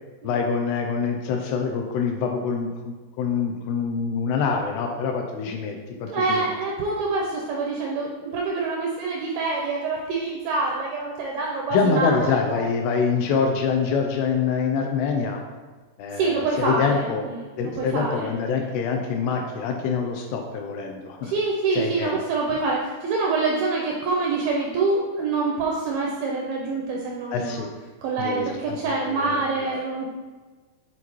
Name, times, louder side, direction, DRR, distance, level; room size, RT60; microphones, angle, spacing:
voice 1, 0.2-6.5 11.7-15.4 16.0-17.2 17.6-21.3 21.8-22.1 27.3-27.7 28.2-29.8, left 5 dB, 85° left, 3 dB, 2.4 m, -25 dB
voice 2, 6.1-12.6 13.3-13.4 16.1-18.7 21.2-27.7 28.0-30.1, right 3 dB, 85° right, -2 dB, 2.1 m, -26 dB
8.3 x 4.0 x 3.0 m, 1.3 s
omnidirectional pair, 4.9 m